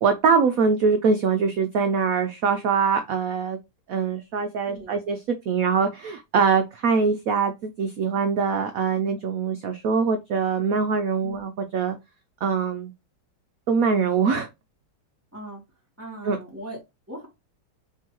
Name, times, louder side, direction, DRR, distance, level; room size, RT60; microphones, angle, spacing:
voice 1, 0.0-3.6 3.9-5.2 5.5-12.0 12.4-12.9 13.7-14.5 16.2-16.4, right 5 dB, 90° right, 0.7 m, -23 dB
voice 2, 4.7-5.0 11.2-11.4 15.3-15.6 16.0-16.8 17.1-17.3, right 1 dB, 5° right, 2.3 m, -39 dB
4.6 x 3.9 x 3.0 m
omnidirectional pair, 2.2 m